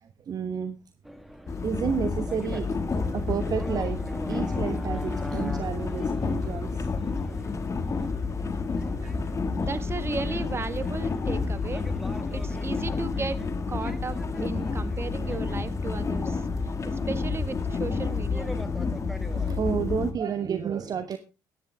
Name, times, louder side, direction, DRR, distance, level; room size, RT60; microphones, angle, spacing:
voice 1, 0.0-0.8 1.6-6.9 9.0-9.1 9.6-9.7 19.3-21.2, right 7 dB, 40° right, 10 dB, 1.1 m, -31 dB
sound 1, 1.0-19.6, equal, ahead, 1.5 m, -43 dB
sound 2, 1.5-20.1, left 4 dB, 30° left, 2.0 m, -30 dB
voice 2, 9.6-11.8 12.3-13.4 13.7-18.5, right 4 dB, 25° right, 13 dB, 1.6 m, -35 dB
15.0 x 10.5 x 3.5 m, 0.31 s
hypercardioid pair, 55°, 10 cm